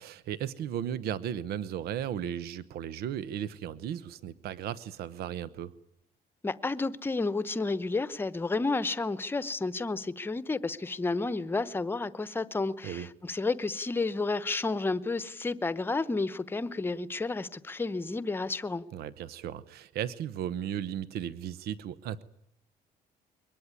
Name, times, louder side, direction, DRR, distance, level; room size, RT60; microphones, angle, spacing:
voice 1, 0.0-5.7 12.8-13.1 18.9-22.2, right 10 dB, 85° right, 1.0 m, -35 dB
voice 2, 6.4-18.8, left 3 dB, 15° left, 0.9 m, -31 dB
23.5 x 19.5 x 9.8 m
cardioid pair, 170°, 16 cm